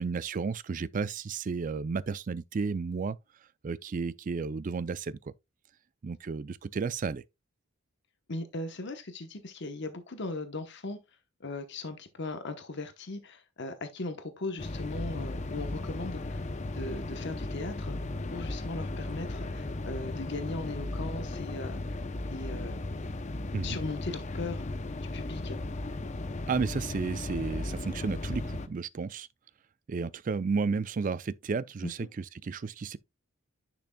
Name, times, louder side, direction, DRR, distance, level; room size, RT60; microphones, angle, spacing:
voice 1, 0.0-3.2 3.6-5.3 6.0-7.2 23.5-23.8 26.5-29.3 29.9-33.0, right 5 dB, 35° right, 0.3 m, -32 dB
voice 2, 8.3-11.0 11.4-18.0 18.3-22.0 22.3-22.8 23.6-24.7 25.0-25.6 31.8-32.1, left 2 dB, 55° left, 1.0 m, -38 dB
sound 1, 14.6-28.7, left 2 dB, 35° left, 0.6 m, -36 dB
10.5 x 6.0 x 2.2 m
head